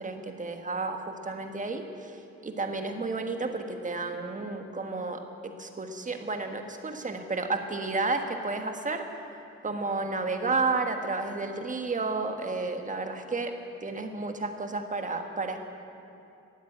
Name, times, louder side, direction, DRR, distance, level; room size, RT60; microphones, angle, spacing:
voice 1, 0.0-2.2 2.4-9.0 9.6-13.5 13.8-15.6, right 3 dB, 25° right, 5 dB, 1.4 m, -32 dB
13.5 x 9.2 x 8.7 m, 2.7 s
cardioid pair, 90°, 30 cm